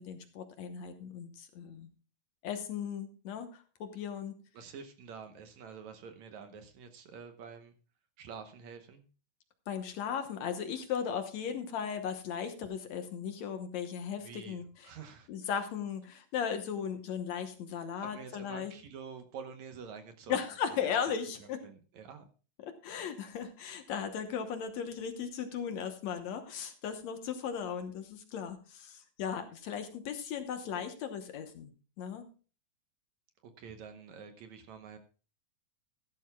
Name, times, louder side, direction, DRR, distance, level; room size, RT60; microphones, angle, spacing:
voice 1, 0.0-1.9 2.4-3.5 3.8-4.4 9.7-14.9 15.3-18.7 20.3-21.6 22.7-31.7 32.0-32.2, left 7 dB, 65° left, 8 dB, 2.0 m, -37 dB
voice 2, 4.5-7.7 8.2-9.1 14.2-15.6 18.0-20.4 20.7-20.8 21.4-22.3 33.6-35.0, right 6 dB, 65° right, 7 dB, 2.1 m, -48 dB
15.5 x 12.5 x 2.3 m, 0.35 s
omnidirectional pair, 3.9 m